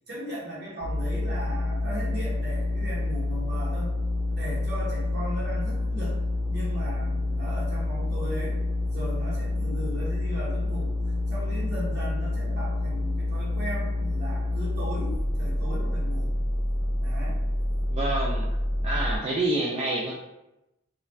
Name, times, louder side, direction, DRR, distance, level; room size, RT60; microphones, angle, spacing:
voice 1, 0.1-3.9 4.3-6.2 6.5-8.6 8.9-10.9 11.3-16.3 17.0-17.4, equal, 55° right, -6 dB, 1.1 m, -37 dB
sound 1, 0.8-19.2, left 1 dB, 60° left, 0.7 m, -28 dB
voice 2, 17.9-18.5 18.8-20.2, right 2 dB, 30° right, -4 dB, 0.3 m, -27 dB
2.4 x 2.1 x 3.2 m, 0.92 s
head